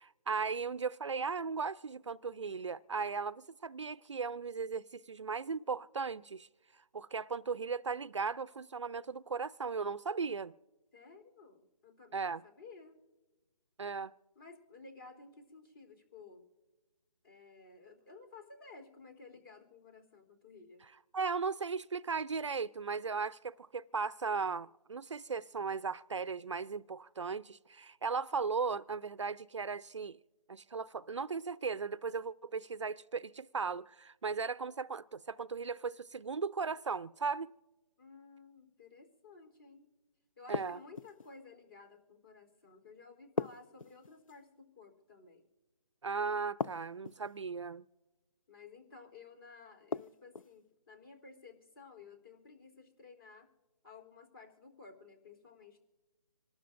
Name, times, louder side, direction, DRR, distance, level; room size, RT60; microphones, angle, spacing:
voice 1, 0.0-6.5 6.9-10.5 12.1-12.4 13.8-14.1 21.1-30.2 30.5-37.5 40.5-40.8 46.0-47.8, right 5 dB, 55° right, 0.4 m, -37 dB
voice 2, 10.9-13.0 14.4-16.4 17.2-20.8 38.0-39.9 40.4-45.5 48.5-53.5 53.8-55.8, left 4 dB, 40° left, 3.5 m, -55 dB
sound 1, 40.5-41.3 43.4-44.4 46.6-47.4 49.9-50.6, left 5 dB, 65° left, 0.5 m, -38 dB
26.5 x 12.5 x 2.6 m
hypercardioid pair, 170°, 19 cm